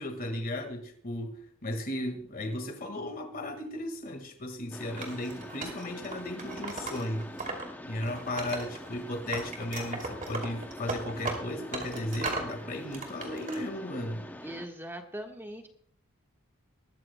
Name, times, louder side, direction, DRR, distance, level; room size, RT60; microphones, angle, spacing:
voice 1, 0.0-7.3 7.8-14.3, left 1 dB, 40° left, 1.8 m, -35 dB
Mechanisms, 4.7-14.7, left 1 dB, 10° left, 0.6 m, -45 dB
Wood, 5.0-7.6 8.0-9.0 9.3-12.5 12.9-13.6, right 3 dB, 35° right, 2.7 m, -37 dB
voice 2, 14.4-15.7, right 1 dB, 10° right, 1.4 m, -40 dB
20.0 x 14.0 x 2.2 m
head